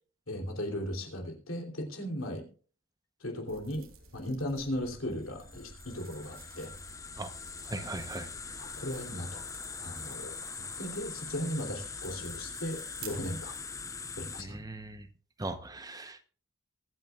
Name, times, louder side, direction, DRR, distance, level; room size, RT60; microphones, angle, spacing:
voice 1, 0.3-2.4 3.2-3.8 4.1-6.7 8.6-9.5 9.8-10.3 10.8-13.6 14.2-14.6, equal, 75° left, 3 dB, 3.2 m, -37 dB
sound 1, 3.5-14.3, right 4 dB, 85° right, 3.3 m, -53 dB
sound 2, 5.3-14.4, left 5 dB, 15° left, 0.6 m, -42 dB
voice 2, 7.6-8.3 14.4-15.1 15.4-16.2, right 2 dB, 20° right, 9 dB, 0.9 m, -39 dB
23.5 x 9.3 x 2.4 m, 0.40 s
head